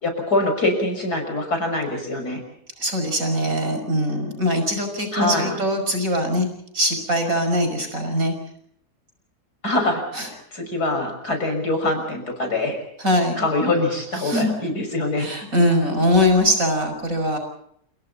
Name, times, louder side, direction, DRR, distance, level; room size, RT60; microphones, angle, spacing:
voice 1, 0.0-2.4 5.1-5.6 9.6-10.0 10.3-12.8 13.4-15.3, left 2 dB, 90° left, 5 dB, 6.5 m, -24 dB
voice 2, 2.8-6.5 6.7-8.3 10.1-10.3 13.0-13.4 14.2-14.5 15.2-17.4, equal, 60° right, 6 dB, 6.4 m, -21 dB
29.5 x 28.0 x 4.1 m, 0.70 s
omnidirectional pair, 1.6 m